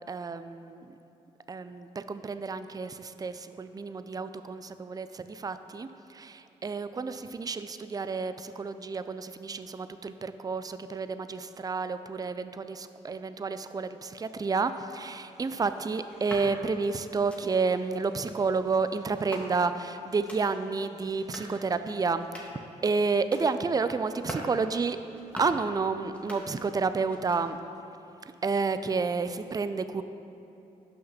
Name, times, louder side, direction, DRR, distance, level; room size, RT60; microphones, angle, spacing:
voice 1, 0.1-1.0 1.5-22.5 22.8-25.0 25.4-27.6 28.2-30.0, right 4 dB, 25° right, 11 dB, 0.4 m, -30 dB
sound 1, 16.1-16.5 17.1-17.4 18.1-18.4 19.1-19.8 20.1-20.4 21.1-21.5 22.1-22.6 23.1-23.5 24.1-24.5 25.1-25.6 26.1-26.8 27.1-27.7, equal, 10° left, 1.8 m, -44 dB
6.4 x 5.6 x 5.8 m, 2.8 s
supercardioid pair, 50°, 16 cm